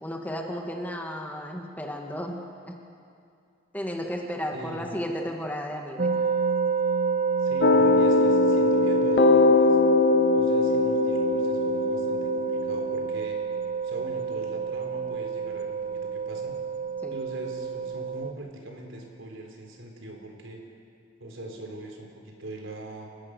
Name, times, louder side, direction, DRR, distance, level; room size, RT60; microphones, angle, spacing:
voice 1, 0.0-2.4 2.7-2.8 3.7-6.2 17.0-17.1, equal, 10° left, 2 dB, 1.7 m, -33 dB
voice 2, 4.5-5.0 7.4-9.8 10.3-13.4 13.8-16.6 17.1-20.6 21.2-23.1, right 1 dB, 85° right, 2 dB, 3.9 m, -41 dB
sound 1, 6.0-18.3, right 6 dB, 40° right, 0.7 m, -28 dB
sound 2, 7.6-13.1, left 4 dB, 60° left, 0.5 m, -22 dB
29.0 x 16.0 x 6.6 m, 2.4 s
head